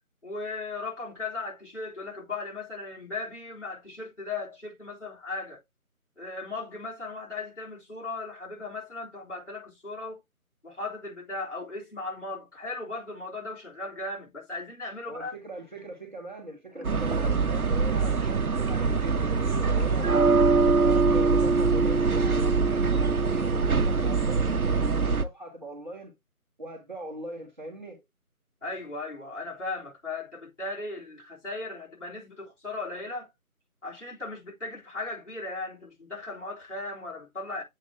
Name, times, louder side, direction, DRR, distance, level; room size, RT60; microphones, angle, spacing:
voice 1, 0.2-5.6 6.2-10.2 10.6-15.3 28.6-33.3 33.8-37.6, left 3 dB, 55° left, 3.7 m, -37 dB
voice 2, 15.1-20.1 20.5-26.1 26.6-28.0, right 1 dB, 30° right, 1.4 m, -41 dB
sound 1, 16.7-18.0 19.7-21.0, right 2 dB, 50° right, 1.1 m, -40 dB
sound 2, 16.8-25.2, right 4 dB, 70° right, 0.9 m, -23 dB
7.7 x 3.0 x 4.6 m
figure-of-eight pair, 165°, 44 cm